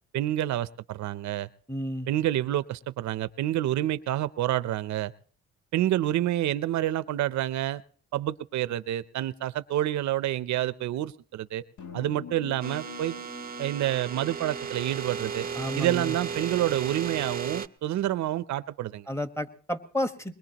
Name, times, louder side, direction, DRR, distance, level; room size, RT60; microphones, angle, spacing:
voice 1, 0.1-1.5 2.1-5.1 5.7-7.8 8.1-11.6 11.9-13.2 13.6-15.5 15.8-19.1, right 13 dB, 70° right, 15 dB, 0.7 m, -28 dB
voice 2, 1.7-2.1 15.5-16.1 19.1-20.4, left 1 dB, 10° left, 9 dB, 1.3 m, -31 dB
sound 1, 11.8-15.9, left 7 dB, 70° left, 1.5 m, -46 dB
sound 2, 12.6-17.7, right 6 dB, 30° right, 0.6 m, -35 dB
21.5 x 21.0 x 3.0 m, 0.43 s
cardioid pair, 90°, 30 cm